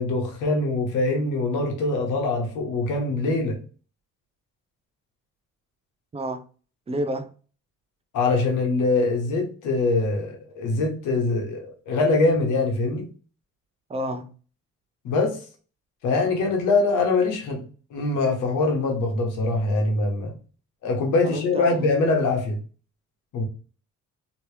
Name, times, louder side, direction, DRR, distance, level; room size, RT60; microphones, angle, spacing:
voice 1, 0.0-3.6 8.1-13.1 15.0-15.4 16.0-17.6 17.9-20.3 20.8-22.6 23.3-23.4, left 3 dB, 90° left, 1.1 m, -23 dB
voice 2, 6.1-6.4 6.9-7.3 13.9-14.3 21.2-21.9, right 1 dB, 20° right, 0.5 m, -29 dB
3.0 x 2.9 x 3.1 m
cardioid pair, 90°, 30 cm